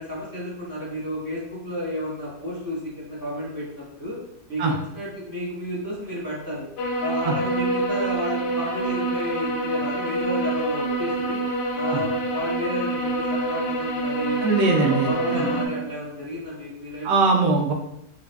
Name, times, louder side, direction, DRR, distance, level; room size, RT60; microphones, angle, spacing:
voice 1, 0.0-4.2 4.5-6.7 6.9-11.4 11.7-14.4 14.7-17.3, left 1 dB, 15° left, -9 dB, 1.0 m, -32 dB
sound 1, 6.8-15.7, right 2 dB, 65° left, 0.9 m, -26 dB
voice 2, 14.4-15.6 17.0-17.7, right 3 dB, 85° right, 2 dB, 1.3 m, -21 dB
4.9 x 3.1 x 2.3 m, 0.77 s
omnidirectional pair, 1.9 m